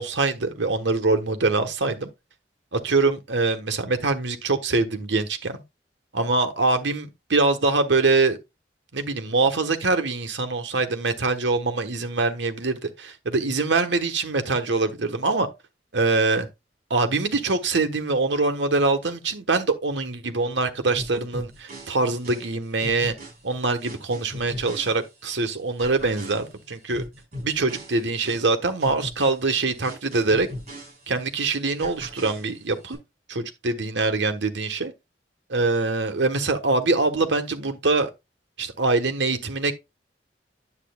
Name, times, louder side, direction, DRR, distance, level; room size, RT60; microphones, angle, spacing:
voice 1, 0.0-2.1 2.7-5.6 6.1-8.4 8.9-15.5 15.9-16.5 16.9-23.1 23.4-27.0 27.4-30.5 31.1-33.0 33.3-34.9 35.5-38.1 38.6-39.7, right 3 dB, 85° right, 1.3 m, -24 dB
sound 1, 20.9-25.4 25.8-31.4 31.8-32.9, equal, 40° right, 5.8 m, -40 dB
10.0 x 7.7 x 2.3 m
head